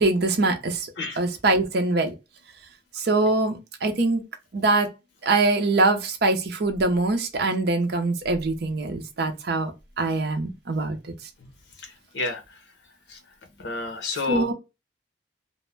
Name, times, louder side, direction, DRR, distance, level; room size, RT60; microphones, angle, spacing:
voice 1, 0.0-0.9 1.2-2.1 2.9-4.2 4.5-4.9 5.2-9.7 10.0-11.0 14.3-14.5, right 2 dB, 60° right, 0.6 m, -23 dB
voice 2, 11.8-12.6 13.1-13.2 13.6-14.5, left 3 dB, 75° left, 0.7 m, -30 dB
2.5 x 2.0 x 3.2 m
head